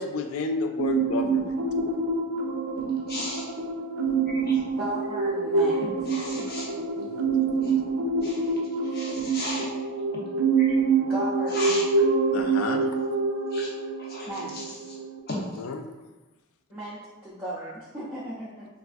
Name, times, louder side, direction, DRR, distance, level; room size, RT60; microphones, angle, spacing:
voice 1, 0.0-1.5 6.7-7.2 12.3-12.8 15.6-15.8, left 4 dB, 70° left, 5 dB, 0.3 m, -31 dB
sound 1, 0.8-15.2, right 4 dB, 65° right, 0.4 m, -26 dB
voice 2, 3.1-3.5 4.3-4.5 6.1-6.7 7.6-7.7 8.2-8.4 8.9-9.7 10.6-10.7 11.5-11.8 13.5-13.7 14.0-14.3, left 2 dB, 45° left, -5 dB, 0.8 m, -35 dB
voice 3, 4.8-6.1 11.0-11.8 14.3-14.8 16.7-18.7, right 1 dB, 10° right, -10 dB, 0.5 m, -36 dB
3.4 x 2.3 x 2.4 m, 1.1 s
head